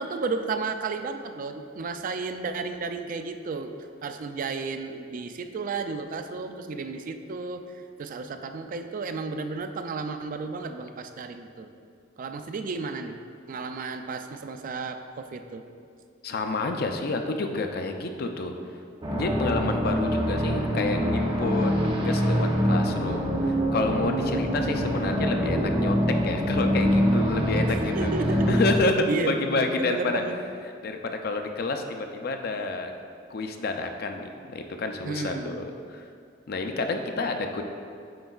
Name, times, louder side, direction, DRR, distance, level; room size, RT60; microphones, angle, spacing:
voice 1, 0.0-3.7 4.0-11.7 12.2-13.2 13.5-15.7 27.7-28.6 29.1-30.4 35.1-35.7, right 4 dB, 45° right, 7 dB, 0.3 m, -33 dB
voice 2, 16.2-18.5 19.1-28.1 28.5-30.2 30.8-32.9 33.3-36.0 36.5-37.6, left 3 dB, 55° left, 5 dB, 0.5 m, -29 dB
sound 1, 19.0-28.8, equal, 25° right, 0.7 m, -25 dB
7.7 x 5.3 x 2.3 m, 2.3 s
head